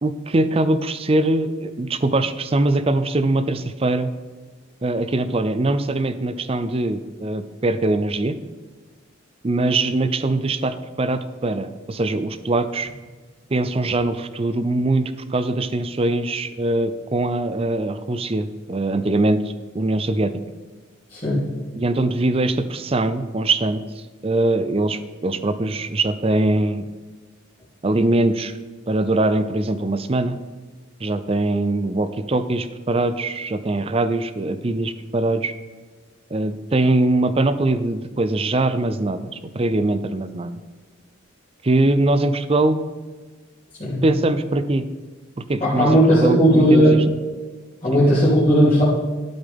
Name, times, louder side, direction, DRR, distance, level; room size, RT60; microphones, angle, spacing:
voice 1, 0.0-4.1 4.8-8.3 9.4-12.9 13.5-20.3 21.7-23.8 24.2-26.8 27.8-28.6 28.9-30.4 31.0-35.5 36.3-40.6 41.6-42.8 44.0-44.8 45.4-47.0 47.9-48.0, right 2 dB, 30° right, 12 dB, 0.5 m, -22 dB
voice 2, 21.1-21.4 43.8-44.0 45.6-47.0 47.8-48.8, equal, 30° left, -12 dB, 3.2 m, -16 dB
12.5 x 7.9 x 3.6 m, 1.4 s
head